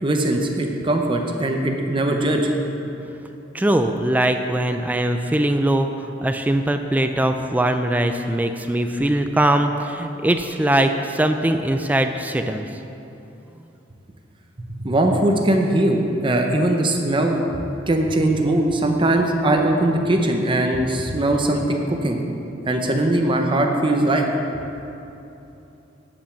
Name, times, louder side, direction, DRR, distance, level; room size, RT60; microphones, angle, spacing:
voice 1, 0.0-2.5 14.8-17.4 17.9-22.2 22.7-24.3, right 1 dB, 25° right, 3 dB, 0.7 m, -20 dB
voice 2, 3.5-12.7, right 1 dB, 10° right, 7 dB, 0.3 m, -21 dB
10.0 x 5.2 x 7.2 m, 2.9 s
head